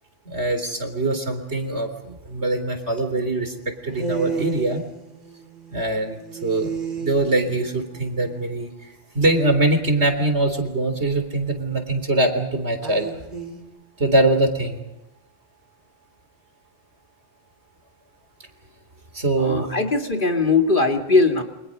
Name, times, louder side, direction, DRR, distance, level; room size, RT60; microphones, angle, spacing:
voice 1, 0.3-3.5 3.8-4.8 5.7-6.7 7.0-8.7 9.1-13.1 14.0-14.8 19.1-19.7, right 2 dB, 75° right, 7 dB, 4.0 m, -22 dB
sound 1, 3.0-3.1 3.9-8.6 12.8-13.6, right 5 dB, 45° right, 4.4 m, -33 dB
voice 2, 19.4-21.4, left 3 dB, 50° left, 3 dB, 2.6 m, -20 dB
29.0 x 25.0 x 5.4 m, 0.93 s
omnidirectional pair, 1.1 m